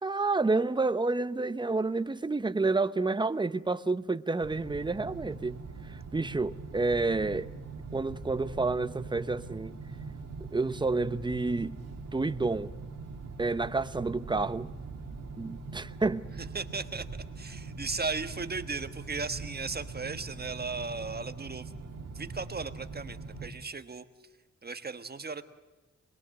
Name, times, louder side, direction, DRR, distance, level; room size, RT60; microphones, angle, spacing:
voice 1, 0.0-5.6 5.9-7.5 7.9-9.8 10.5-11.8 12.1-12.7 13.4-14.7 15.4-16.3, right 3 dB, 15° right, 0.7 m, -29 dB
sound 1, 4.4-23.5, right 4 dB, 60° right, 2.7 m, -42 dB
voice 2, 16.5-17.1 17.4-21.7 22.1-24.0 24.6-25.4, right 4 dB, 35° right, 1.4 m, -36 dB
26.5 x 21.5 x 7.8 m
wide cardioid pair, 140°, 29 cm